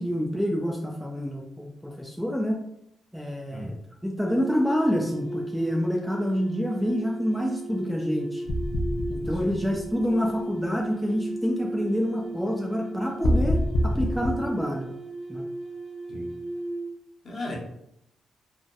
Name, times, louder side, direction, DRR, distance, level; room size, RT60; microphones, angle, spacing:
voice 1, 0.0-2.6 3.1-3.8 4.0-8.4 9.1-14.9 15.3-15.4, equal, ahead, -1 dB, 0.4 m, -27 dB
sound 1, 4.2-16.9, right 1 dB, 20° right, 0.8 m, -36 dB
sound 2, 8.5-10.3 13.2-14.3, equal, 75° left, 0.3 m, -26 dB
voice 2, 17.2-17.6, left 1 dB, 50° left, -2 dB, 0.8 m, -36 dB
2.7 x 2.0 x 2.3 m, 0.77 s
cardioid pair, 85°, 0 cm